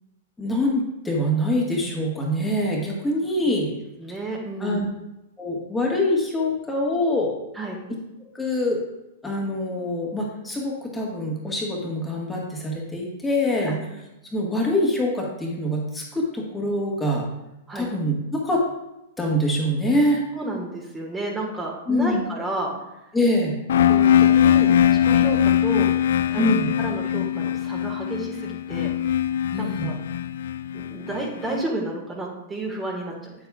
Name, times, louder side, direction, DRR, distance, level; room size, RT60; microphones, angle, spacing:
voice 1, 0.4-3.7 4.6-4.8 5.4-7.3 8.3-8.8 9.2-13.7 14.2-17.3 17.7-18.6 19.2-20.3 21.9-22.2 23.1-23.6 26.3-26.7 29.5-29.9, left 1 dB, 10° left, -3 dB, 1.6 m, -24 dB
voice 2, 4.0-4.8 7.5-7.8 13.6-13.8 17.7-17.9 20.3-22.7 23.9-25.9 26.3-29.1 29.6-30.0 30.7-33.3, right 2 dB, 15° right, -1 dB, 1.7 m, -31 dB
sound 1, 23.7-31.5, left 10 dB, 65° left, 0.3 m, -21 dB
8.6 x 8.0 x 2.4 m, 0.91 s
hypercardioid pair, 105°, 0 cm